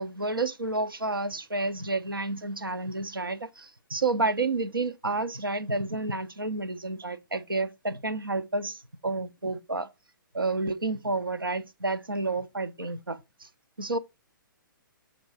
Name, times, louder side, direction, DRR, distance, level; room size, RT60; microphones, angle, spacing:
voice 1, 0.0-9.9 10.3-13.5 13.8-14.0, right 3 dB, 80° right, 0.9 m, -30 dB
6.6 x 3.9 x 3.9 m
figure-of-eight pair, 125°, 11 cm